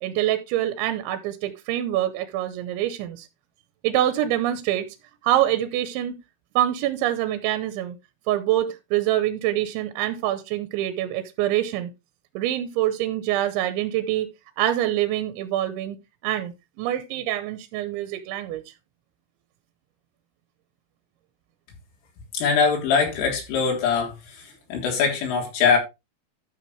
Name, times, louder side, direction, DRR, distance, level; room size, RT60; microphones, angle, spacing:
voice 1, 0.0-3.3 3.8-4.9 5.2-6.1 6.6-8.0 8.3-11.9 12.3-14.3 14.6-16.0 16.2-16.5 16.8-18.6, right 13 dB, 75° right, 2.9 m, -25 dB
voice 2, 22.3-24.1 24.7-25.8, left 5 dB, 70° left, 6.0 m, -22 dB
13.0 x 6.8 x 3.2 m
omnidirectional pair, 5.9 m